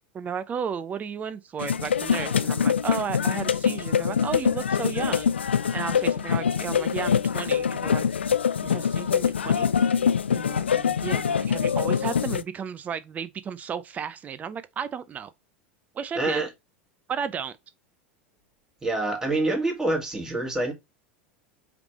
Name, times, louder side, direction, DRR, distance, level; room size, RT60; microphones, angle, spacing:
voice 1, 0.1-8.1 8.6-9.7 10.3-15.3 15.9-16.4 17.1-17.5, right 7 dB, 25° right, 0.6 m, -34 dB
sound 1, 1.6-12.4, left 7 dB, 80° left, 0.3 m, -24 dB
voice 2, 16.2-16.5 18.8-20.7, right 2 dB, 10° right, 2.0 m, -26 dB
5.0 x 3.3 x 3.1 m
figure-of-eight pair, 80°, 6 cm